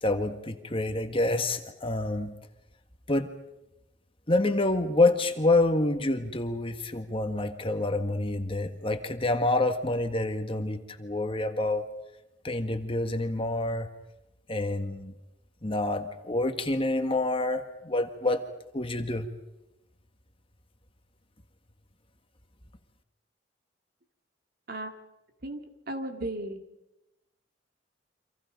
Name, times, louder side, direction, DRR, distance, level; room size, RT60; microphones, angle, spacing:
voice 1, 0.0-2.3 3.1-3.3 4.3-11.8 12.4-13.9 14.5-15.1 15.6-18.4 18.7-19.3, left 2 dB, 30° left, 7 dB, 1.7 m, -27 dB
voice 2, 25.9-26.6, right 1 dB, 55° right, 5 dB, 2.5 m, -34 dB
28.5 x 26.5 x 5.3 m, 0.93 s
head